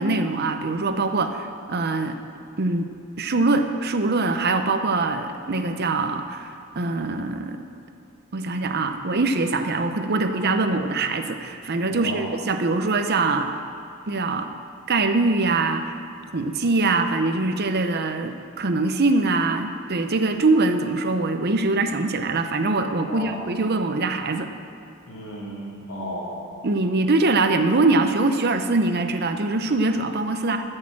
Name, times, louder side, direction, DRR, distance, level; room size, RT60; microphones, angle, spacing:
voice 1, 0.0-2.2 2.6-2.9 3.2-6.5 6.8-7.6 8.3-13.5 14.1-14.5 14.9-15.9 16.3-24.5 26.6-30.6, right 3 dB, 50° right, 7 dB, 0.7 m, -23 dB
voice 2, 11.9-12.3 23.1-23.4 25.0-26.5, equal, 85° left, -9 dB, 2.7 m, -33 dB
13.5 x 6.6 x 7.3 m, 2.6 s
head